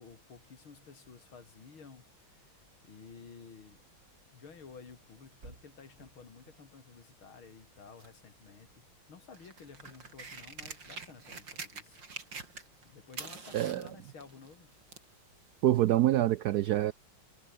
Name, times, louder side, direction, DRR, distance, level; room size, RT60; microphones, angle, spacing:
voice 1, 0.0-2.5 2.8-3.8 4.3-12.2 12.8-14.7, left 5 dB, 90° left, 3.8 m, -53 dB
sound 1, 2.3-6.6 7.6-13.2, right 3 dB, 45° right, 4.7 m, -63 dB
sound 2, 9.3-12.8 13.1-15.1 15.9-16.0, right 4 dB, 60° right, 4.1 m, -45 dB
voice 2, 15.6-16.9, right 14 dB, 80° right, 0.8 m, -26 dB
omnidirectional pair, 2.2 m